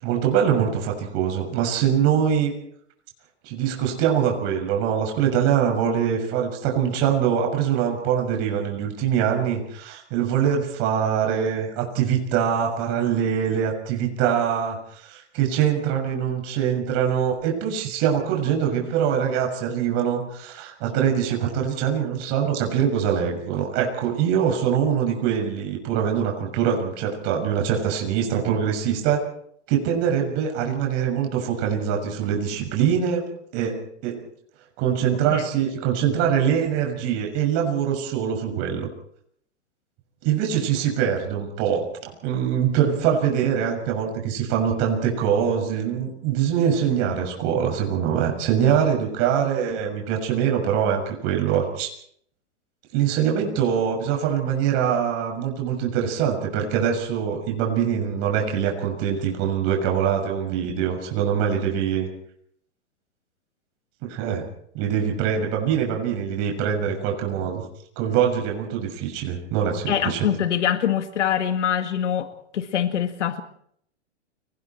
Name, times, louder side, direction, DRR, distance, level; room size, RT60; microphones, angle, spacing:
voice 1, 0.0-2.5 3.4-29.2 29.7-33.3 33.5-34.2 34.8-38.9 40.2-41.9 42.2-51.9 52.9-62.1 64.1-64.4 64.7-67.6 68.0-70.2, right 8 dB, 45° right, 2 dB, 6.6 m, -23 dB
voice 2, 69.9-73.4, left 9 dB, 80° left, 8 dB, 2.0 m, -24 dB
29.5 x 20.5 x 4.5 m, 0.66 s
hypercardioid pair, 120°, 35 cm